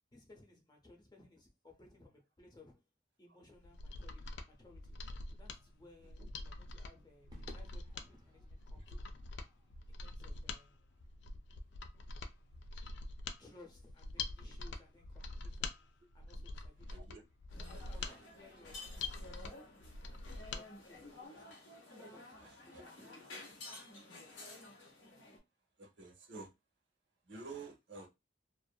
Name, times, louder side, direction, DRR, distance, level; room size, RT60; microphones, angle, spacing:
voice 1, 0.1-2.8 3.2-5.0 5.3-9.0 10.0-10.8 13.4-17.1 17.5-19.7 20.3-21.6 22.0-24.5, left 2 dB, 20° left, 0.6 m, -62 dB
Mechanisms, 3.6-20.6 21.0-21.1, left 3 dB, 65° left, 0.4 m, -45 dB
Crowd / Fireworks, 7.3-11.8, equal, 20° right, 0.6 m, -61 dB
voice 2, 16.9-17.2 18.0-18.2 20.1-20.2 22.4-22.9 23.2-23.3 24.3-24.4 25.8-26.5 27.3-28.1, right 3 dB, 70° right, 0.8 m, -51 dB
sound 1, 17.5-25.4, left 2 dB, 90° left, 0.9 m, -52 dB
2.6 x 2.4 x 2.2 m
head